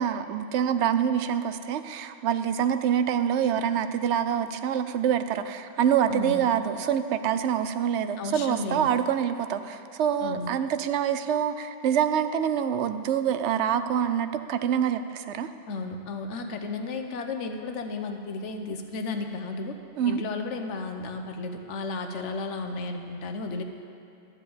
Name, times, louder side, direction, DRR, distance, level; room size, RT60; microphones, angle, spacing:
voice 1, 0.0-15.5 20.0-20.2, right 8 dB, 75° right, 10 dB, 0.8 m, -26 dB
voice 2, 6.1-6.4 8.2-8.9 10.2-10.5 15.7-19.7 20.1-23.6, left 3 dB, 85° left, 5 dB, 1.1 m, -33 dB
12.0 x 4.8 x 8.5 m, 2.8 s
omnidirectional pair, 1.2 m